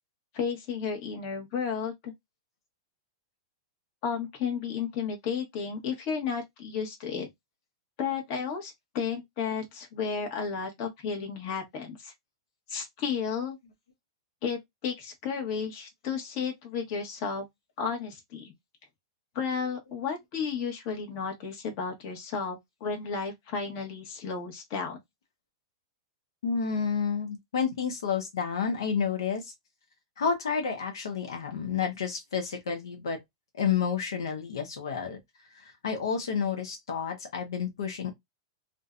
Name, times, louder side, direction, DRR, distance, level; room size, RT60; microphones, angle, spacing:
voice 1, 0.3-2.1 4.0-7.3 8.0-12.1 12.7-13.6 14.4-17.4 17.8-18.5 19.3-25.0, left 6 dB, 50° left, 1.1 m, -33 dB
voice 2, 26.4-29.5 30.2-33.2 33.6-35.2 35.5-38.1, left 6 dB, 90° left, 0.7 m, -30 dB
2.5 x 2.2 x 2.4 m
hypercardioid pair, 135°, 2 cm